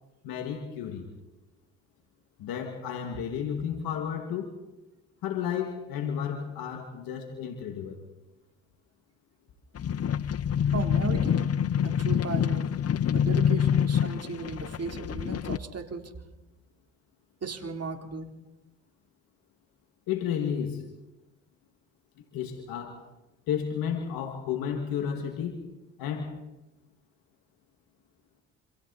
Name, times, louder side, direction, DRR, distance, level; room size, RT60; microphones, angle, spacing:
voice 1, 0.2-1.1 2.4-4.5 5.2-8.0 20.1-20.8 22.3-23.0 23.5-25.6 26.0-26.4, left 8 dB, 85° left, 4 dB, 2.3 m, -32 dB
sound 1, 9.8-15.6, left 8 dB, 45° left, 0.8 m, -26 dB
voice 2, 10.7-11.6 11.8-12.7 13.1-16.1 17.4-18.3, right 4 dB, 45° right, 4 dB, 3.6 m, -36 dB
28.0 x 26.0 x 4.2 m, 0.98 s
supercardioid pair, 60°, 35 cm